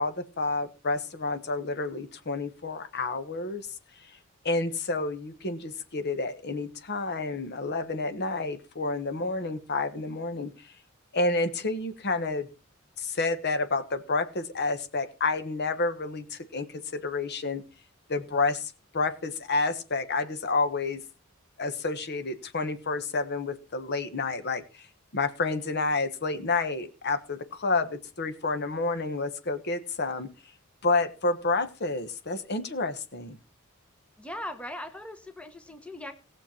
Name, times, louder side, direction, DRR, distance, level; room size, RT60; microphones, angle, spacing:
voice 1, 0.0-3.7 4.4-10.5 11.1-12.5 13.0-17.6 18.1-21.0 21.6-24.9 25.1-30.3 30.8-33.4, left 3 dB, 50° left, 9 dB, 1.3 m, -29 dB
voice 2, 34.2-36.1, left 1 dB, 5° left, 7 dB, 1.1 m, -39 dB
18.5 x 6.8 x 4.4 m, 0.32 s
head